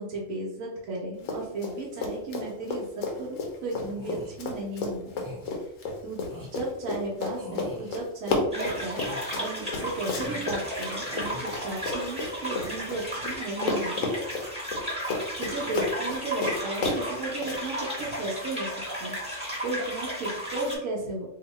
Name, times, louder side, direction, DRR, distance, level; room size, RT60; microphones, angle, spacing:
voice 1, 0.0-5.1 5.4-5.5 6.0-6.2 6.5-14.1 15.4-18.7 19.0-19.2 19.6-21.3, right 2 dB, 85° right, -3 dB, 1.2 m, -34 dB
Run, 1.2-1.7 2.0-13.4 13.6-17.6, left 3 dB, 75° left, 1.1 m, -32 dB
sound 1, 3.9-4.3 5.1-5.5 6.2-6.5 7.4-8.0 8.7-9.4 10.0-10.7 11.0-11.4, left 1 dB, 20° right, 0.6 m, -44 dB
sound 2, 8.5-20.8, equal, 5° right, 1.4 m, -34 dB
2.8 x 2.7 x 4.0 m, 0.78 s
omnidirectional pair, 1.3 m